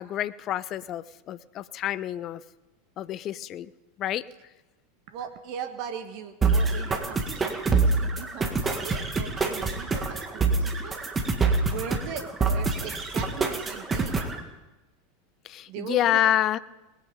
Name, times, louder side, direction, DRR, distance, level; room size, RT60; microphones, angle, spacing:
voice 1, 0.0-2.4 3.0-3.7 4.0-4.3 15.4-16.6, left 12 dB, 40° left, 17 dB, 0.6 m, -28 dB
voice 2, 5.1-11.0 11.7-14.2 15.7-16.2, right 7 dB, 50° right, 8 dB, 1.4 m, -39 dB
sound 1, 6.4-14.4, right 4 dB, 20° right, 1.9 m, -26 dB
20.5 x 9.1 x 5.2 m, 1.1 s
figure-of-eight pair, 85°, 0 cm